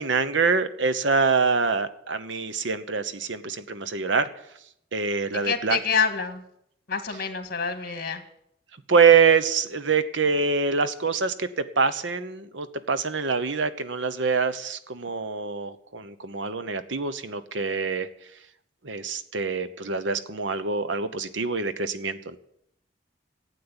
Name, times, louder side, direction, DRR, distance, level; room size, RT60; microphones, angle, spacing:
voice 1, 0.0-4.3 4.9-5.8 8.9-18.1 18.8-22.4, right 5 dB, 90° right, 12 dB, 1.0 m, -25 dB
voice 2, 5.4-6.4 6.9-8.2, left 6 dB, 55° left, 8 dB, 1.8 m, -27 dB
12.0 x 8.6 x 9.7 m, 0.75 s
head